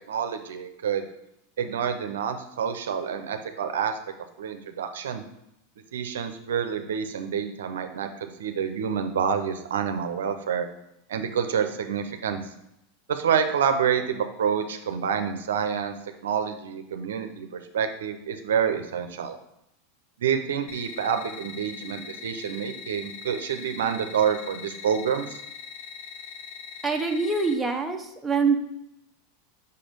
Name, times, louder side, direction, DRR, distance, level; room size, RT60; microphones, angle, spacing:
voice 1, 0.1-1.0 1.6-4.0 4.4-5.2 5.9-10.7 11.1-12.4 13.1-15.9 16.2-19.4 20.2-25.4, right 7 dB, 80° right, 7 dB, 0.6 m, -28 dB
sound 1, 20.7-27.5, left 6 dB, 70° left, 1.2 m, -41 dB
voice 2, 26.8-28.7, right 4 dB, 10° right, 2 dB, 0.9 m, -25 dB
5.4 x 4.2 x 5.2 m, 0.80 s
hypercardioid pair, 105°, 0 cm